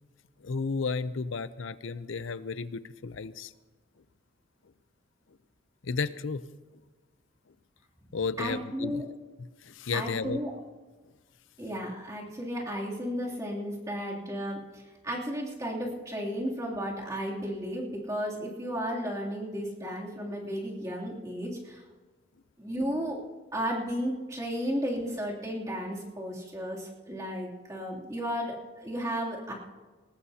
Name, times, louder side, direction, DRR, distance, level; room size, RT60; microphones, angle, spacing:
voice 1, 0.4-3.5 5.8-6.4 8.1-9.0 9.6-10.4, left 4 dB, 75° left, 15 dB, 0.6 m, -33 dB
voice 2, 8.4-9.1 9.9-10.5 11.6-21.8 22.6-23.2 23.5-29.5, equal, 15° right, -4 dB, 2.9 m, -34 dB
19.5 x 19.0 x 2.8 m, 1.3 s
head